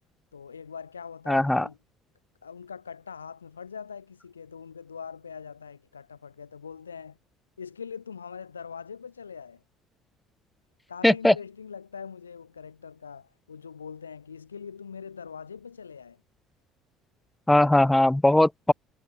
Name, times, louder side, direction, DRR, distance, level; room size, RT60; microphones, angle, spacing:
voice 1, 0.3-1.8 2.4-7.2 7.6-9.6 10.9-16.2, left 6 dB, 80° left, 5.1 m, -42 dB
voice 2, 1.3-1.6 11.0-11.3 17.5-18.7, left 1 dB, 5° left, 1.8 m, -19 dB
figure-of-eight pair, 55°, 0 cm